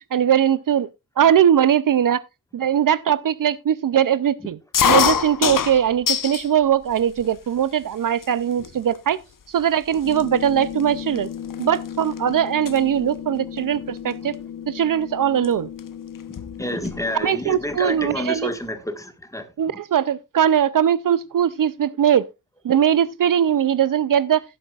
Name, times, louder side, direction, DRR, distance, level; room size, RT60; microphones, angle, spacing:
voice 1, 0.1-0.9 1.2-2.2 2.5-4.6 4.8-9.2 9.5-11.3 11.6-14.4 14.7-15.7 17.2-18.5 19.6-22.3 22.6-24.4, right 9 dB, 60° right, 0.5 m, -20 dB
sound 1, 4.7-6.5 6.9-7.6 8.2-8.3 8.6-9.0 9.6-9.7 9.9-12.2 12.5-12.8 14.1-14.3 15.4-15.5 15.8-15.9 16.2-17.0, left 7 dB, 60° left, 0.9 m, -23 dB
sound 2, 10.0-17.4, left 9 dB, 90° left, 1.0 m, -35 dB
voice 2, 16.3-19.5, left 1 dB, 10° left, 1.5 m, -29 dB
17.0 x 8.6 x 2.4 m
wide cardioid pair, 135°, 36 cm